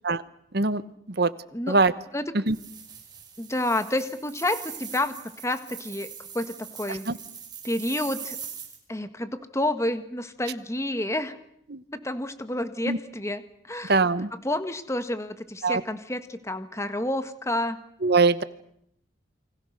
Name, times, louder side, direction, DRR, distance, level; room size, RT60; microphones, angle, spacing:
sound 1, 2.5-8.8, right 7 dB, 20° right, 5.5 m, -41 dB
voice 1, 3.4-5.1 5.4-7.1 7.6-8.4 8.9-11.4 11.9-14.0 14.4-17.8, left 1 dB, 15° left, 10 dB, 1.5 m, -29 dB
voice 2, 13.9-14.3 15.6-15.8 18.0-18.4, right 3 dB, 55° right, 15 dB, 1.1 m, -22 dB
29.5 x 24.5 x 6.7 m, 0.73 s
head